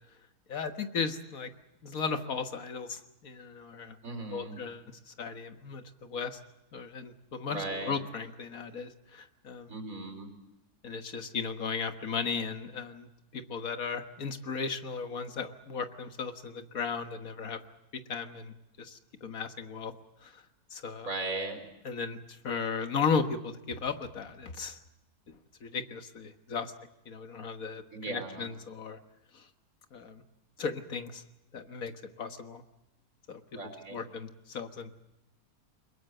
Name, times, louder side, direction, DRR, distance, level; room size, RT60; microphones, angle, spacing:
voice 1, 0.5-1.5 1.8-4.0 4.3-6.4 6.7-9.7 10.8-17.6 17.9-19.9 20.2-20.4 20.7-21.1 21.9-24.8 25.3-26.7 27.1-29.0 29.3-29.5 29.9-30.2 30.6-31.2 31.5-32.6 33.3-34.9, left 5 dB, 65° left, 8 dB, 1.9 m, -36 dB
voice 2, 4.0-4.6 7.5-8.0 9.7-10.3 21.0-21.6 27.9-28.5 33.5-34.0, right 2 dB, 65° right, 5 dB, 4.5 m, -37 dB
23.0 x 21.5 x 7.8 m, 0.92 s
omnidirectional pair, 1.6 m